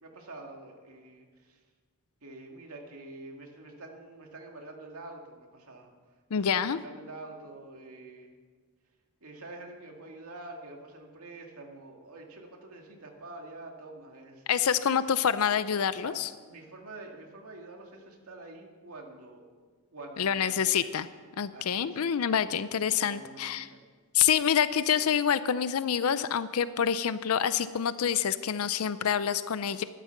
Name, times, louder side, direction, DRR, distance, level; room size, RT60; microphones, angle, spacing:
voice 1, 0.0-1.6 2.2-5.9 6.4-8.3 9.2-14.8 15.9-19.5 19.9-20.9 21.5-22.0 22.3-22.6 23.0-23.9, right 2 dB, 80° right, 1 dB, 2.2 m, -47 dB
voice 2, 6.3-6.8 14.5-16.3 20.2-21.1 21.4-23.7 24.1-29.8, left 8 dB, 75° left, 14 dB, 0.5 m, -27 dB
12.5 x 12.5 x 6.0 m, 1.5 s
head